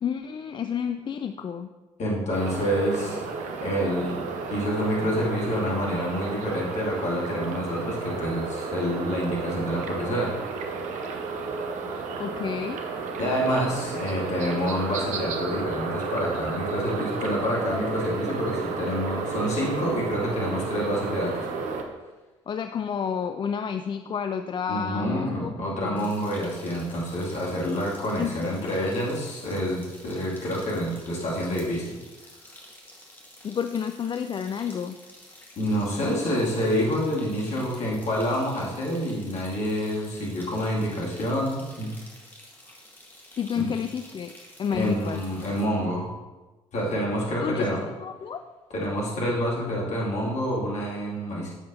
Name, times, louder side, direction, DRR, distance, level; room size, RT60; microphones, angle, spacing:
voice 1, 0.0-1.7 12.2-12.8 22.5-26.1 28.2-28.8 33.4-35.0 43.4-44.3 44.6-45.2 47.4-47.7 48.0-48.4, left 7 dB, 30° left, 8 dB, 0.4 m, -30 dB
voice 2, 2.0-3.3 3.6-4.2 4.5-10.6 13.2-21.4 24.7-31.9 35.6-41.9 43.5-43.7 44.7-46.1 46.7-47.8 48.7-51.5, equal, 50° left, -4 dB, 2.5 m, -27 dB
sound 1, 2.3-21.8, right 4 dB, 55° right, 0.9 m, -32 dB
sound 2, 26.0-45.6, left 1 dB, 15° left, 2.0 m, -50 dB
10.0 x 7.4 x 2.8 m, 1.2 s
figure-of-eight pair, 45°, 15 cm